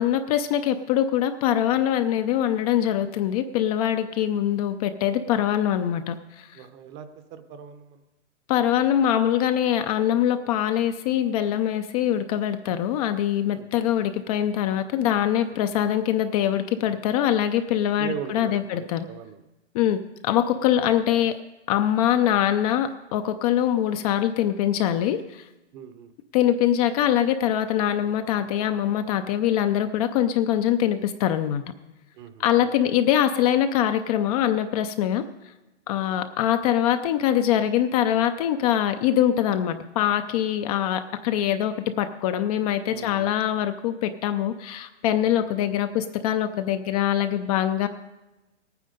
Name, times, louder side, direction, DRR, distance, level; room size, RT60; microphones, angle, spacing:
voice 1, 0.0-6.5 8.5-19.0 19.7-21.4 21.7-25.4 26.3-31.6 32.4-35.2 35.9-47.9, left 11 dB, 30° left, 8 dB, 0.5 m, -23 dB
voice 2, 6.5-8.0 13.5-13.7 15.5-15.6 18.0-19.4 25.7-26.1 32.2-32.7 35.9-36.2 42.9-43.3 45.4-45.5, right 9 dB, 30° right, 10 dB, 0.9 m, -40 dB
17.5 x 9.4 x 5.2 m, 1.0 s
hypercardioid pair, 130°, 36 cm